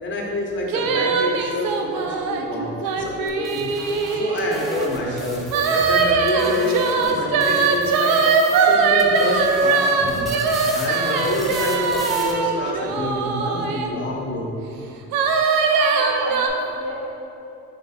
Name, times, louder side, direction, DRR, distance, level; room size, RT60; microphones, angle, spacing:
voice 1, 0.0-3.7 4.1-8.2 8.6-10.3 10.7-14.5, left 1 dB, 35° left, -2 dB, 0.8 m, -27 dB
sound 1, 0.7-4.9 5.5-13.9 15.1-16.5, right 5 dB, 90° right, 0.5 m, -21 dB
sound 2, 3.3-7.1 7.4-8.7 9.0-12.3, equal, ahead, 0.4 m, -36 dB
voice 2, 15.7-17.1, equal, 40° right, -6 dB, 0.8 m, -32 dB
3.3 x 3.2 x 4.1 m, 2.8 s
cardioid pair, 115°, 34 cm